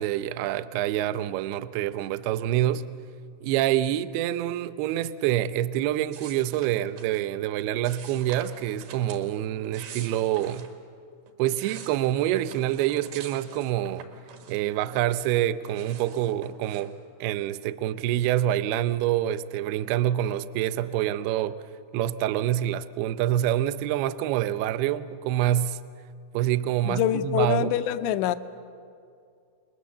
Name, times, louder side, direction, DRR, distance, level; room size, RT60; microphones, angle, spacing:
voice 1, 0.0-2.9 3.4-10.7 11.4-14.1 14.5-17.0 17.2-21.6 21.9-25.8 26.3-27.7, right 12 dB, 80° right, 2.3 m, -26 dB
sound 1, 6.1-7.2 7.8-9.2 9.6-10.7 11.3-14.9 15.2-16.9, right 6 dB, 60° right, 3.3 m, -46 dB
voice 2, 26.9-28.4, left 11 dB, 80° left, 2.8 m, -25 dB
29.5 x 21.0 x 7.3 m
omnidirectional pair, 5.4 m